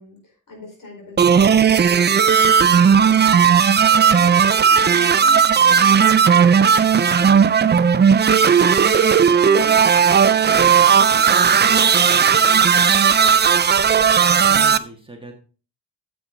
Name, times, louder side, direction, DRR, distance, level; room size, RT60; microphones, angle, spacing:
voice 1, 0.0-10.8 11.1-13.4, left 2 dB, 65° left, 0 dB, 4.7 m, -40 dB
sound 1, 1.2-14.8, right 7 dB, 30° right, 0.4 m, -15 dB
voice 2, 14.1-15.3, right 2 dB, 15° right, 2 dB, 1.5 m, -38 dB
9.5 x 7.5 x 3.9 m, 0.36 s
wide cardioid pair, 155°, 35 cm